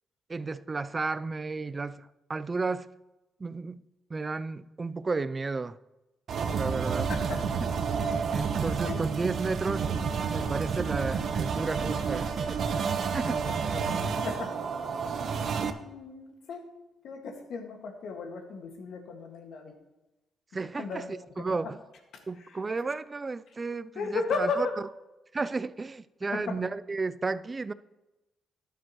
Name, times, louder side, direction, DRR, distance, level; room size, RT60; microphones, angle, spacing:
voice 1, 0.3-2.9 3.4-3.8 4.1-5.8 6.5-7.1 8.3-9.9 10.3-12.3 13.1-13.4 20.5-21.8 22.3-24.7 25.3-27.7, right 3 dB, 30° right, 0.4 m, -32 dB
sound 1, 6.3-15.7, right 6 dB, 55° right, 0.8 m, -30 dB
voice 2, 7.1-7.4 8.2-8.3 8.8-9.0 13.4-13.5 14.2-14.5 15.8-16.6 17.0-19.7 20.8-21.1 22.1-22.2 24.0-24.7 26.3-26.6, left 4 dB, 70° left, 1.7 m, -35 dB
12.5 x 10.5 x 3.0 m
cardioid pair, 90°, 0 cm